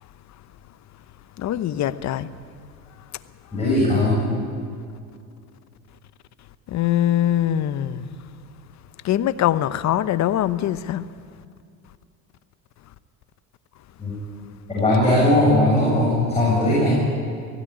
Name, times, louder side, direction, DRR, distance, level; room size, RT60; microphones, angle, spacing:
voice 1, 1.4-2.3 6.7-8.0 9.0-11.0, left 11 dB, 50° left, 14 dB, 0.9 m, -22 dB
voice 2, 3.5-4.3 14.0-14.1 14.7-17.0, left 1 dB, 15° left, -6 dB, 7.5 m, -19 dB
17.0 x 16.5 x 9.9 m, 2.3 s
supercardioid pair, 95°, 36 cm